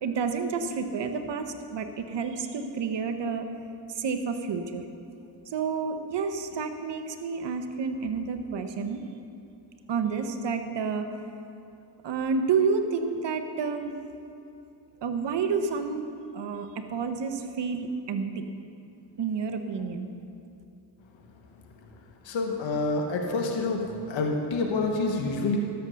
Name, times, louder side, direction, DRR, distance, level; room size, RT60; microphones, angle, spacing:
voice 1, 0.0-3.5 3.9-4.8 5.5-9.0 9.9-11.1 12.0-13.9 15.0-16.1 16.3-18.5 19.2-20.1, right 5 dB, 70° right, 7 dB, 1.1 m, -29 dB
voice 2, 22.3-25.6, left 3 dB, 85° left, 2 dB, 1.1 m, -27 dB
13.0 x 7.3 x 6.3 m, 2.7 s
cardioid pair, 60°, 44 cm